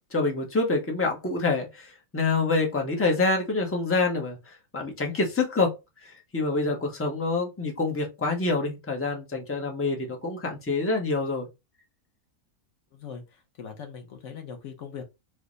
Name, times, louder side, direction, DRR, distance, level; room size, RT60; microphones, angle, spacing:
voice 1, 0.1-5.7 6.0-11.5, left 3 dB, 20° left, 0.4 m, -26 dB
voice 2, 12.9-15.0, left 6 dB, 60° left, 1.0 m, -41 dB
3.4 x 2.0 x 3.8 m
omnidirectional pair, 1.6 m